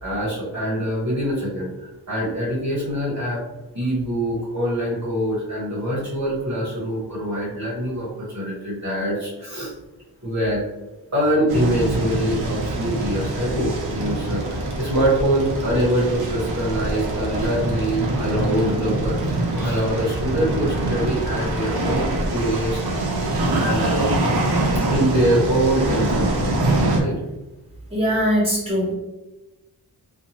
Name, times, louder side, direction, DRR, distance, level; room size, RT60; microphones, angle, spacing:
voice 1, 0.0-3.4 3.7-9.7 10.2-10.6 11.1-22.8 23.5-24.1 24.9-26.6 26.9-27.2, right 1 dB, 40° right, -7 dB, 1.1 m, -24 dB
sound 1, 11.5-27.0, right 2 dB, 65° right, 0.7 m, -24 dB
voice 2, 27.9-28.9, equal, 15° right, -6 dB, 1.3 m, -21 dB
2.6 x 2.4 x 2.9 m, 1.0 s
wide cardioid pair, 90°, 40 cm